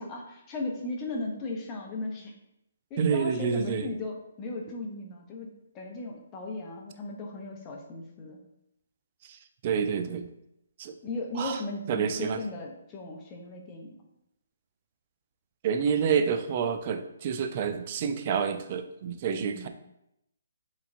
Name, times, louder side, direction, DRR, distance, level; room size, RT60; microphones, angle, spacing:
voice 1, 0.0-2.3 2.9-8.4 11.0-14.0 19.4-19.7, left 2 dB, 20° left, 0 dB, 0.6 m, -37 dB
voice 2, 3.0-3.8 9.6-10.3 10.8-10.9 11.4-11.6 11.9-12.4 15.6-19.7, right 6 dB, 40° right, 8 dB, 0.3 m, -28 dB
3.4 x 3.0 x 2.5 m, 0.83 s
hypercardioid pair, 150°, 0 cm